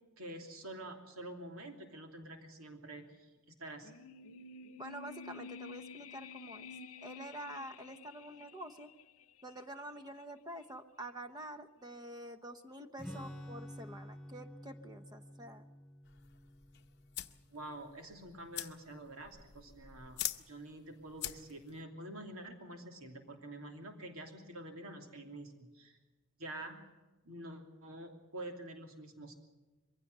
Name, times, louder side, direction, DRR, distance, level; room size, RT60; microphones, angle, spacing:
voice 1, 0.2-3.3 3.6-3.9 17.5-20.2 20.5-25.9 26.4-26.8 27.2-29.4, right 1 dB, 70° right, 3 dB, 2.9 m, -47 dB
sound 1, 3.8-9.1 9.4-9.5, left 4 dB, 75° left, 0.8 m, -50 dB
voice 2, 4.8-6.7 7.0-8.9 9.4-15.7, right 1 dB, 20° right, 9 dB, 1.0 m, -47 dB
Strum, 13.0-18.6, equal, ahead, 5.0 m, -50 dB
sound 2, 16.0-21.8, left 13 dB, 50° left, 0.8 m, -45 dB
23.0 x 16.0 x 8.1 m, 1.2 s
head